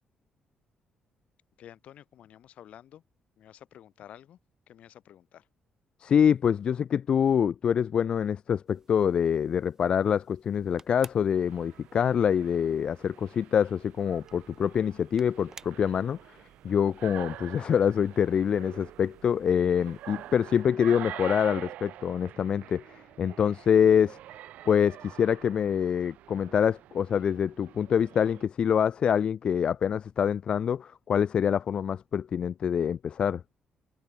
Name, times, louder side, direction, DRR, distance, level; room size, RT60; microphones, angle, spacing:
voice 1, 1.6-3.0 3.4-4.4 4.7-5.5, left 11 dB, 60° left, 7.3 m, -51 dB
voice 2, 6.0-16.2 16.6-24.2 24.7-33.4, left 8 dB, 40° left, 0.4 m, -25 dB
sound 1, 8.7-20.6, right 4 dB, 20° right, 6.4 m, -56 dB
sound 2, 11.3-28.5, right 13 dB, 85° right, 1.5 m, -46 dB
cardioid pair, 165°, 2 cm